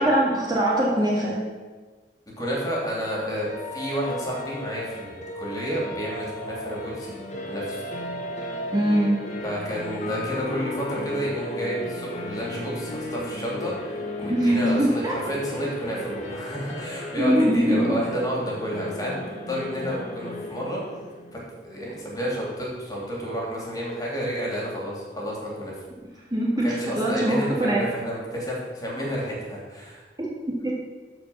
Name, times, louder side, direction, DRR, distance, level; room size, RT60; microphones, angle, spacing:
voice 1, 0.0-1.4 8.7-9.2 14.3-15.3 17.2-18.0 26.3-27.8 30.2-30.3 30.6-30.7, right 1 dB, 25° right, -4 dB, 1.7 m, -22 dB
voice 2, 2.4-7.1 7.4-7.9 9.4-19.1 19.5-20.8 21.3-25.7 26.6-30.0, equal, 20° left, -3 dB, 3.0 m, -30 dB
sound 1, 3.5-21.6, left 1 dB, 45° left, 1.5 m, -35 dB
13.5 x 4.9 x 5.9 m, 1.4 s
head